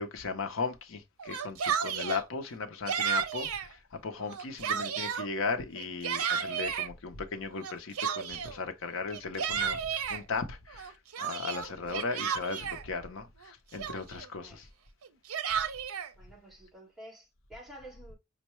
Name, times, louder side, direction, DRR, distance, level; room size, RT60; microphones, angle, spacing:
voice 1, 0.0-14.7, left 4 dB, 70° left, 0.6 m, -37 dB
Yell, 1.2-2.2 2.9-3.7 4.2-5.3 5.8-6.9 7.6-8.6 9.1-10.2 10.7-12.8 13.4-13.5 13.8-14.3 15.0-16.1, right 7 dB, 90° right, 0.5 m, -32 dB
voice 2, 11.8-12.1 14.3-14.7 16.2-18.1, right 1 dB, ahead, 1.3 m, -50 dB
5.4 x 2.1 x 3.0 m
head